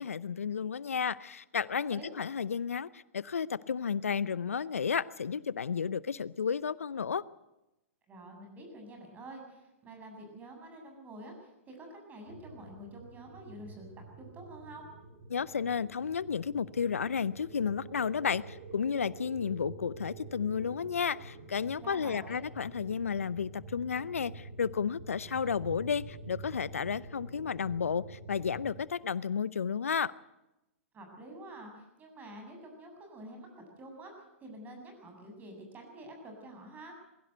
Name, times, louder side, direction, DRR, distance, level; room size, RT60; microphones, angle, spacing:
voice 1, 0.0-7.2 15.3-30.1, left 6 dB, 85° left, 20 dB, 0.7 m, -32 dB
voice 2, 8.1-13.9 14.2-14.9 21.8-22.4 30.9-34.1 34.4-36.9, right 1 dB, 20° right, 3 dB, 7.7 m, -48 dB
sound 1, 12.2-28.7, right 3 dB, 75° right, 7.7 m, -48 dB
22.0 x 16.0 x 8.0 m, 0.93 s
hypercardioid pair, 115°, 7 cm